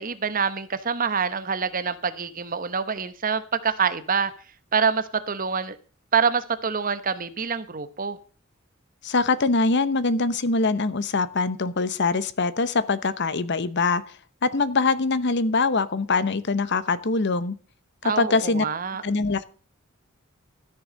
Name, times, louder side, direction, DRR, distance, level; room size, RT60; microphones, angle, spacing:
voice 1, 0.0-4.3 4.7-5.8 6.1-8.2 18.0-19.0, right 6 dB, 40° right, 12 dB, 1.0 m, -26 dB
voice 2, 9.0-17.5 18.2-18.6 19.0-19.4, left 3 dB, 55° left, 15 dB, 0.9 m, -23 dB
13.5 x 6.8 x 6.3 m, 0.38 s
head